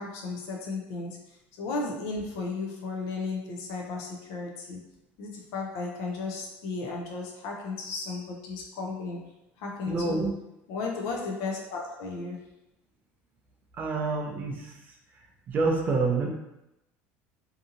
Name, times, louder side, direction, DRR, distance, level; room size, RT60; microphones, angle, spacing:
voice 1, 0.0-4.8 5.2-10.2 10.7-12.5, left 3 dB, 70° left, 0 dB, 0.4 m, -35 dB
voice 2, 9.8-10.3 13.8-14.8 15.5-16.3, right 3 dB, 35° right, 1 dB, 0.4 m, -27 dB
2.6 x 2.6 x 2.5 m, 0.88 s
cardioid pair, 145°, 5 cm